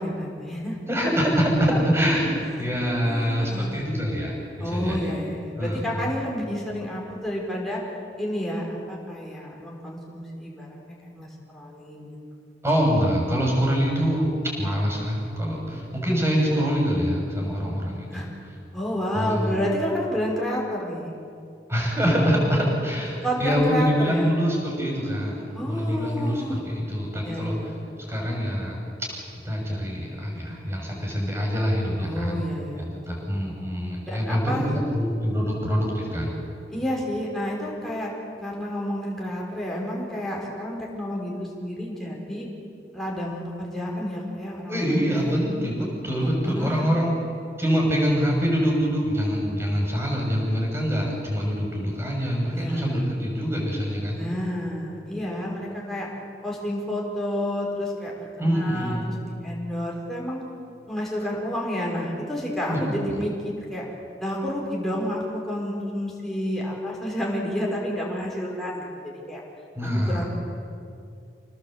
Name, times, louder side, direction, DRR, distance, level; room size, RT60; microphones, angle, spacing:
voice 1, 0.0-0.8 2.6-2.7 3.0-3.9 4.6-7.8 8.2-12.1 18.1-18.3 18.7-21.1 23.2-24.3 25.5-26.6 27.2-28.0 30.3-30.6 32.0-33.6 34.0-34.7 36.7-42.5 42.9-45.0 46.2-46.9 52.5-53.1 54.1-56.1 56.4-60.4 60.9-63.8 64.2-68.9 69.3-69.4 69.8-70.3, equal, ahead, -4 dB, 4.8 m, -30 dB
voice 2, 0.9-5.2 5.6-6.1 12.6-18.3 19.1-19.5 21.7-25.4 25.6-27.6 28.1-28.8 29.4-32.4 32.8-36.4 44.7-47.1 47.6-54.2 58.4-59.2 62.7-62.8 69.8-70.3, equal, 15° right, -1 dB, 6.8 m, -25 dB
27.5 x 19.0 x 8.0 m, 2.5 s
head